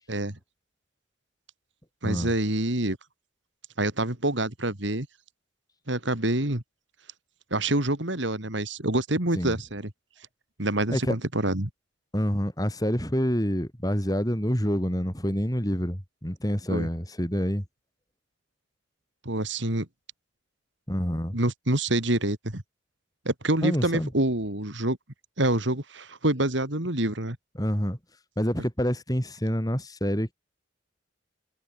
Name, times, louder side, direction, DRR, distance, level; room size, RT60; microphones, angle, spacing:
voice 1, 0.1-0.4 2.0-3.0 3.8-5.1 5.9-6.6 7.5-9.9 10.6-11.7 16.7-16.9 19.2-19.9 21.3-22.6 23.2-25.0 25.4-27.4, right 1 dB, 65° right, 3.1 m, -26 dB
voice 2, 12.1-17.7 20.9-21.4 23.6-24.1 27.6-28.0 28.4-30.3, equal, 20° left, 7.1 m, -27 dB
head